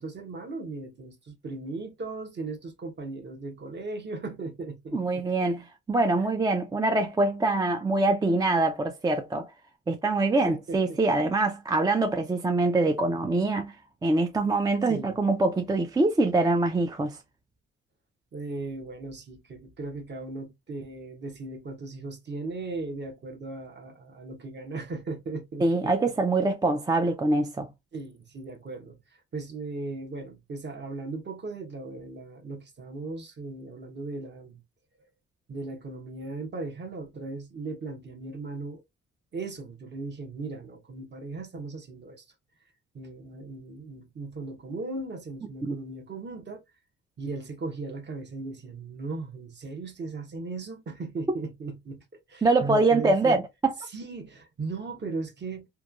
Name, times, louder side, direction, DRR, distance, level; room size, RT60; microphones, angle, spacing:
voice 1, 0.0-5.3 10.4-11.0 14.2-14.3 14.9-15.1 18.3-26.1 27.9-34.6 35.5-38.8 39.3-42.2 42.9-46.6 47.2-52.0 52.3-53.4 53.9-55.7, right 3 dB, 35° right, 0.8 m, -37 dB
voice 2, 4.9-9.5 9.9-13.7 14.0-17.2 25.6-27.7 45.6-45.8 52.4-53.7, right 2 dB, 15° right, 0.3 m, -24 dB
3.0 x 2.2 x 2.3 m
cardioid pair, 90°, 30 cm